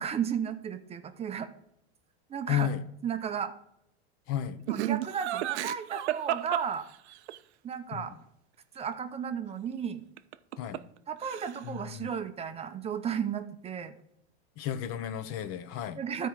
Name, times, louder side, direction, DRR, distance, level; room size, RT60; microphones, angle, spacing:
voice 1, 0.0-1.5 2.3-2.7 3.0-3.5 4.7-6.9 7.6-8.1 8.8-10.0 11.1-14.0 16.0-16.3, right 7 dB, 20° right, 8 dB, 0.5 m, -34 dB
voice 2, 2.5-2.8 4.3-4.6 7.9-8.0 10.6-10.8 11.6-12.1 14.6-16.0, left 10 dB, 45° left, 12 dB, 0.8 m, -33 dB
Laughter, 4.7-7.4 10.2-11.0 11.2-11.8, right 14 dB, 85° right, 0.6 m, -32 dB
12.5 x 4.5 x 4.8 m, 0.78 s
supercardioid pair, 135°, 33 cm